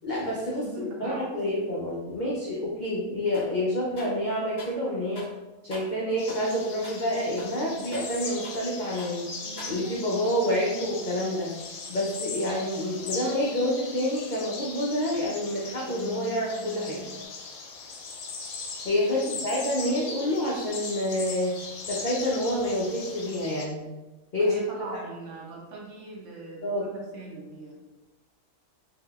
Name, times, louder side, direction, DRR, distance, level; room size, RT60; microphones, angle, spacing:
voice 1, 0.0-5.3 5.6-9.2 9.7-11.5 11.9-17.0 18.8-21.5 21.9-23.9 24.3-24.9 26.6-26.9, left 1 dB, 65° left, -4 dB, 0.4 m, -28 dB
voice 2, 0.6-1.6 19.1-19.5 24.3-27.7, right 3 dB, 65° right, -1 dB, 0.9 m, -41 dB
sound 1, 3.3-3.6 4.0-4.8 5.1-5.4 5.7-6.0 6.3-6.5 6.8-7.1 7.4-8.7 9.0-9.2 9.6-10.1, left 1 dB, 25° left, 0.6 m, -45 dB
sound 2, 6.2-23.7, left 4 dB, 85° left, 1.1 m, -39 dB
sound 3, 9.4-17.3, equal, 35° right, 0.7 m, -46 dB
3.4 x 2.8 x 2.3 m, 1.1 s
omnidirectional pair, 1.5 m